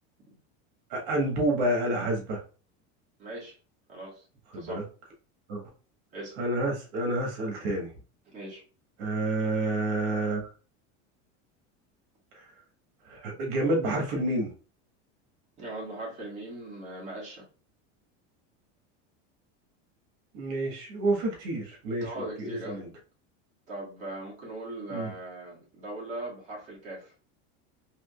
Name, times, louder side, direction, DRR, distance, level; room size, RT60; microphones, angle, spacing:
voice 1, 0.9-2.4 4.5-4.8 5.5-5.6 6.4-7.9 9.0-10.5 12.3-12.4 13.0-14.5 20.3-22.9 24.9-25.1, right 1 dB, 55° right, 1 dB, 1.4 m, -29 dB
voice 2, 3.2-3.6 3.9-4.2 4.6-4.8 6.1-6.4 8.3-8.6 15.6-17.4 22.0-23.0 23.7-27.1, right 1 dB, 20° right, -5 dB, 1.5 m, -39 dB
3.7 x 3.0 x 2.3 m, 0.36 s
cardioid pair, 175°, 34 cm